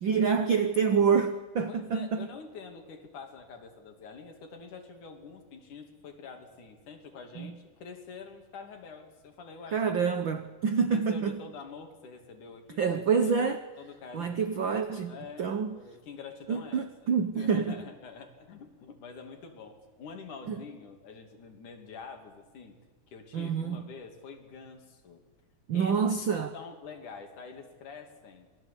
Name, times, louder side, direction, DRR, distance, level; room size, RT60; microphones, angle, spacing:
voice 1, 0.0-2.3 7.4-7.5 9.7-11.4 12.8-13.6 14.1-15.1 15.4-15.8 16.5-17.8 20.5-20.6 23.3-23.8 25.7-26.5, right 6 dB, 75° right, 9 dB, 1.1 m, -27 dB
voice 2, 1.7-9.9 10.9-12.9 13.2-13.5 13.8-14.5 15.1-17.1 17.4-22.8 23.1-25.2 25.7-26.0 26.5-28.5, left 5 dB, 65° left, 5 dB, 4.2 m, -46 dB
27.0 x 21.0 x 8.5 m, 1.3 s
omnidirectional pair, 3.8 m